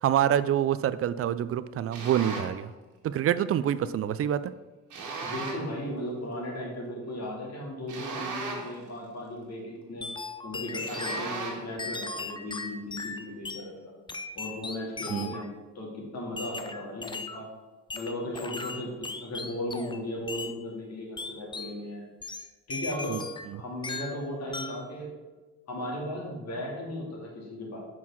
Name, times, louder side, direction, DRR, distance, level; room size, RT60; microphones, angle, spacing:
voice 1, 0.0-2.7 3.0-4.4 15.1-15.4 23.1-23.2 23.5-23.6, right 10 dB, 50° right, 15 dB, 0.4 m, -26 dB
sound 1, 1.9-2.6 4.9-5.8 7.9-8.9 10.9-11.7, right 3 dB, 80° right, 1.8 m, -36 dB
voice 2, 5.2-10.1 10.4-13.9 14.3-17.5 17.9-18.9 19.2-22.1 22.7-23.3 23.5-25.1 25.7-27.8, left 1 dB, 55° left, -2 dB, 2.6 m, -36 dB
sound 2, 10.0-11.3 11.8-13.7 14.1-15.5 16.4-17.4 17.9-20.0 20.3-20.6 21.2-21.8 22.2-23.5 23.8-24.2 24.5-24.9, left 3 dB, 15° left, 0.5 m, -37 dB
6.1 x 4.6 x 5.8 m, 1.2 s
cardioid pair, 90°, 30 cm